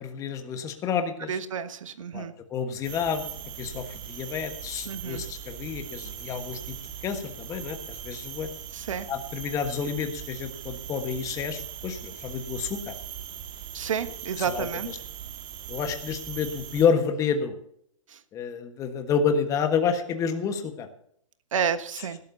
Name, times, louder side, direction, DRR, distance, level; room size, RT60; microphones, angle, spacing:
voice 1, 0.0-1.4 2.1-6.7 7.0-8.5 9.1-12.9 14.5-14.7 15.7-17.6 18.3-20.9, left 6 dB, 20° left, 7 dB, 1.4 m, -29 dB
voice 2, 1.3-2.3 4.9-5.2 8.7-9.1 13.7-14.9 18.1-18.2 21.5-22.2, right 7 dB, 65° right, 11 dB, 1.3 m, -30 dB
sound 1, 2.8-16.9, right 9 dB, 35° right, 2.4 m, -40 dB
20.0 x 12.0 x 2.8 m, 0.70 s
hypercardioid pair, 140°, 17 cm